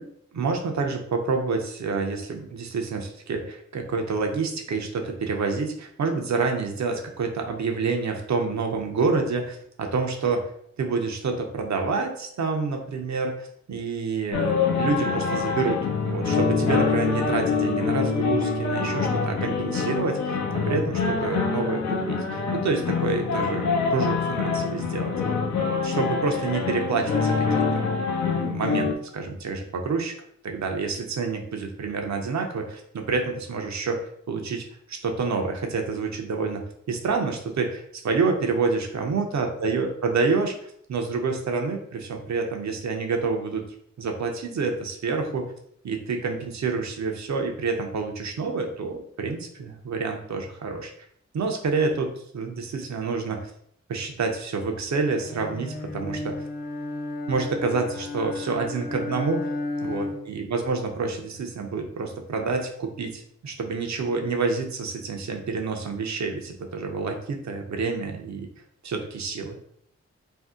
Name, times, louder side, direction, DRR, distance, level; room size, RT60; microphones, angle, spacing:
voice 1, 0.3-10.5 10.8-15.8 16.1-20.4 20.7-22.2 22.6-25.2 25.5-27.9 28.3-30.1 30.4-34.0 34.3-43.6 44.0-45.5 45.8-50.9 51.3-53.5 53.9-56.3 57.3-59.5 59.8-68.5 68.8-69.6, right 4 dB, 70° right, 3 dB, 0.6 m, -28 dB
sound 1, 14.3-28.9, left 5 dB, 75° left, 0.6 m, -25 dB
Bowed string instrument, 55.2-60.4, left 2 dB, 30° left, 0.5 m, -33 dB
2.7 x 2.1 x 3.5 m, 0.67 s
cardioid pair, 45°, 29 cm